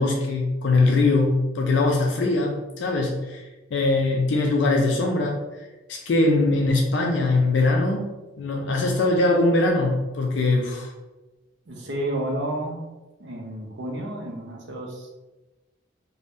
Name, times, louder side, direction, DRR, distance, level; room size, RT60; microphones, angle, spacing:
voice 1, 0.0-5.4 5.9-8.1 8.4-10.9, left 2 dB, 60° left, 1 dB, 0.4 m, -22 dB
voice 2, 11.7-12.8 13.2-15.1, right 1 dB, 60° right, 0 dB, 0.6 m, -31 dB
2.6 x 2.1 x 3.4 m, 1.1 s
head